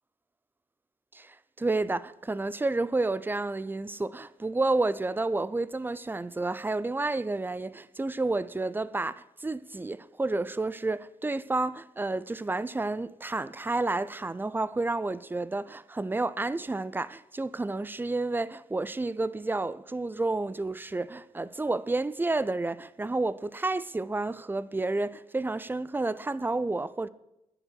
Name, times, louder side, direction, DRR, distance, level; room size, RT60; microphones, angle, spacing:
voice 1, 1.1-27.1, right 2 dB, 15° right, 0.6 m, -30 dB
11.0 x 9.7 x 6.5 m
cardioid pair, 75°, 12 cm